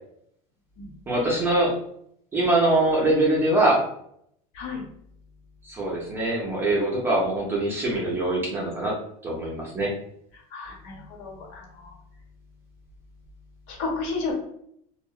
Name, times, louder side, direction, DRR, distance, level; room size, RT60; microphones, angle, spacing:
voice 1, 1.1-1.8 2.3-3.9 5.7-9.0 9.2-9.9, right 2 dB, 10° right, -3 dB, 0.4 m, -23 dB
voice 2, 10.3-12.0 13.7-14.3, left 3 dB, 80° left, -1 dB, 1.0 m, -33 dB
2.7 x 2.0 x 2.3 m, 0.70 s
cardioid pair, 180°, 18 cm